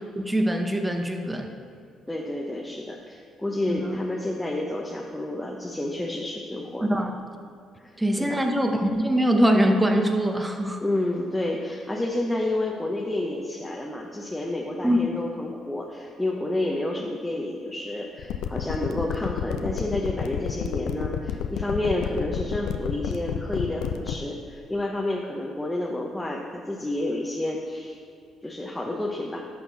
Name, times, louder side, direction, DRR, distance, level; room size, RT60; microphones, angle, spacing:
voice 1, 0.2-1.5 3.7-4.0 6.8-7.1 8.0-10.8 14.8-15.0, equal, 15° right, 4 dB, 1.2 m, -23 dB
voice 2, 2.1-6.9 7.8-8.5 10.8-28.0 28.4-29.4, left 1 dB, 10° left, -2 dB, 1.0 m, -30 dB
sound 1, 18.2-24.2, left 9 dB, 75° left, 0.5 m, -29 dB
11.0 x 6.4 x 4.1 m, 2.3 s
supercardioid pair, 60°, 0 cm